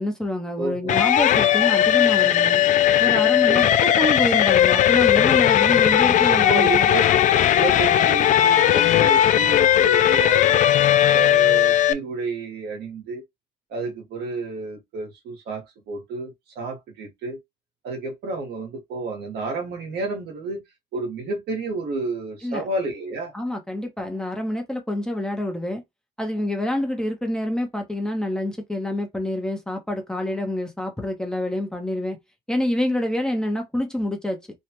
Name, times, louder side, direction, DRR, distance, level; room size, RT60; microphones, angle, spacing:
voice 1, 0.0-2.6 3.0-6.9 22.4-22.7 23.3-25.8 26.2-32.2 32.5-34.4, left 1 dB, 5° left, 0.9 m, -27 dB
voice 2, 0.6-1.1 3.5-3.9 6.3-7.0 7.5-10.6 11.1-13.2 13.7-17.4 17.8-20.6 20.9-23.3, right 3 dB, 70° right, 1.6 m, -31 dB
sound 1, 0.9-11.9, left 11 dB, 50° left, 0.4 m, -17 dB
3.3 x 2.3 x 2.9 m
cardioid pair, 110°, 17 cm